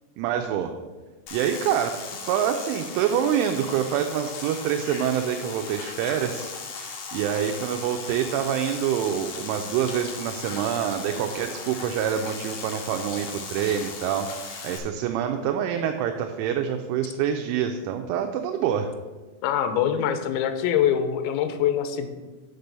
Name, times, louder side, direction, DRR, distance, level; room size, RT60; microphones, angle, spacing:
voice 1, 0.2-0.7 1.3-2.0 2.2-18.9, right 9 dB, 85° right, 5 dB, 3.0 m, -26 dB
sound 1, 1.3-14.8, left 5 dB, 65° left, 2.5 m, -37 dB
voice 2, 19.4-22.1, left 9 dB, 80° left, 8 dB, 2.9 m, -24 dB
6.6 x 6.1 x 6.7 m, 1.3 s
omnidirectional pair, 5.5 m